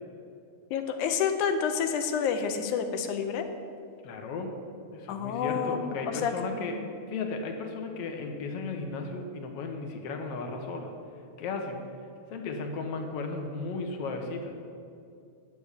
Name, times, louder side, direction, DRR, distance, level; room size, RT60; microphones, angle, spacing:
voice 1, 0.7-3.5 5.1-6.3 6.6-6.7, left 7 dB, 80° left, 7 dB, 2.2 m, -29 dB
voice 2, 4.0-4.5 4.9-6.8 7.1-10.9 11.4-11.8 12.3-14.5, left 3 dB, 60° left, 4 dB, 1.9 m, -35 dB
10.0 x 7.0 x 8.3 m, 2.4 s
omnidirectional pair, 3.6 m